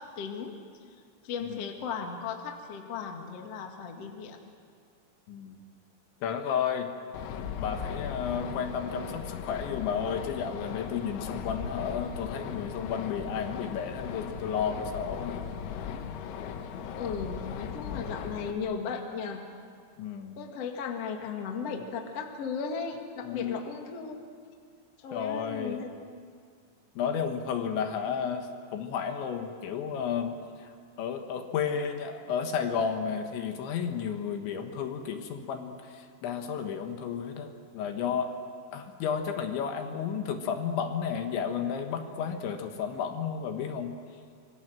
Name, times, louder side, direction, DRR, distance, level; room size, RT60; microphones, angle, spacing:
voice 1, 0.2-0.6 1.2-4.4 16.9-19.5 20.4-24.2 25.0-25.9, left 6 dB, 50° left, 3 dB, 2.0 m, -36 dB
voice 2, 5.3-5.6 6.2-6.9 7.6-15.4 17.9-18.2 20.0-20.4 23.2-23.6 25.1-25.8 27.0-30.7 31.0-38.3 38.7-44.0, left 7 dB, 70° left, 5 dB, 3.5 m, -32 dB
sound 1, 7.1-18.5, left 7 dB, 85° left, 4.1 m, -38 dB
27.0 x 23.5 x 7.7 m, 2.1 s
omnidirectional pair, 5.9 m